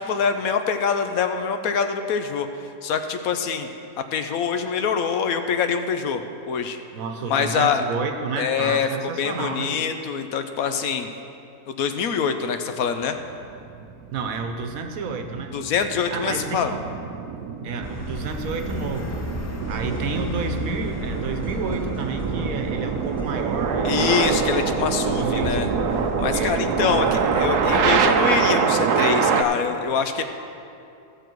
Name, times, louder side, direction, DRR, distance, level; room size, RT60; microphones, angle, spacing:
voice 1, 0.1-2.5 2.8-3.7 4.1-6.8 7.3-7.8 8.4-11.1 11.8-13.2 15.5-16.7 23.8-25.7 26.2-30.2, left 6 dB, 70° left, 8 dB, 1.0 m, -24 dB
voice 2, 6.9-9.8 14.1-15.6 16.1-16.8 17.6-19.2 19.7-24.4 25.1-25.6 26.3-27.2, right 4 dB, 65° right, 6 dB, 1.3 m, -30 dB
sound 1, 13.3-29.4, right 6 dB, 90° right, 1.2 m, -25 dB
sound 2, 17.8-28.0, left 2 dB, 15° left, 0.5 m, -34 dB
15.5 x 6.9 x 4.6 m, 2.7 s
omnidirectional pair, 1.6 m